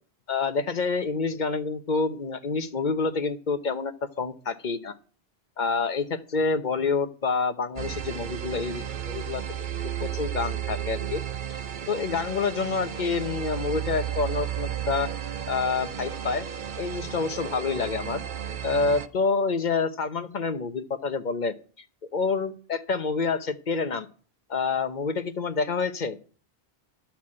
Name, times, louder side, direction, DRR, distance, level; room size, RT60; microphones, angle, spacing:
voice 1, 0.3-4.9 5.6-9.4 10.0-11.2 11.9-15.1 15.5-16.5 16.8-18.2 18.6-21.5 22.1-24.1 24.5-26.2, left 4 dB, 50° left, 10 dB, 1.1 m, -27 dB
sound 1, 7.8-19.1, right 9 dB, 55° right, 0.9 m, -33 dB
12.0 x 5.9 x 8.6 m, 0.39 s
omnidirectional pair, 1.0 m